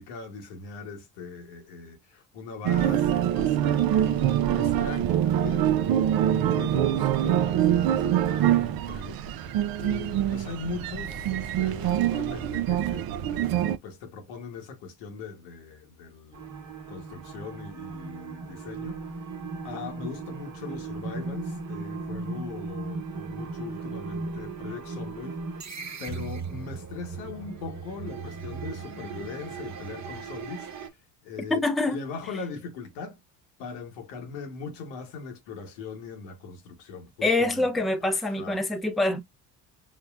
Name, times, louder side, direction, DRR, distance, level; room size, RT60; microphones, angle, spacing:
voice 1, 0.0-9.2 9.8-16.4 16.9-19.2 19.6-25.7 26.0-31.0 31.2-33.2 33.6-37.7 38.0-38.6, left 4 dB, 85° left, 1.2 m, -40 dB
sound 1, 2.6-13.8, right 11 dB, 50° right, 0.5 m, -24 dB
sound 2, 16.3-30.9, right 4 dB, 35° right, 1.0 m, -37 dB
voice 2, 31.5-32.0 37.2-39.2, left 2 dB, ahead, 0.5 m, -25 dB
5.4 x 2.2 x 2.3 m
supercardioid pair, 70°, 46 cm